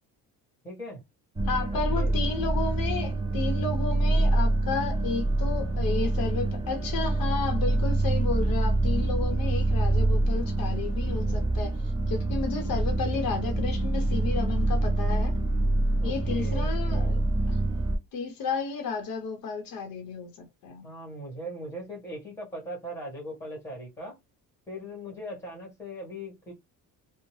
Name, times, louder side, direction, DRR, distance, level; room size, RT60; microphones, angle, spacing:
voice 1, 0.6-1.0 1.7-2.1 16.0-17.1 20.8-24.2 24.7-26.5, equal, 5° left, 1.1 m, -39 dB
sound 1, 1.4-18.0, right 2 dB, 10° right, 0.3 m, -26 dB
voice 2, 1.5-15.4 16.0-17.2 17.5-17.6 18.1-20.9, left 4 dB, 65° left, 0.8 m, -32 dB
2.7 x 2.0 x 3.0 m
cardioid pair, 165°, 37 cm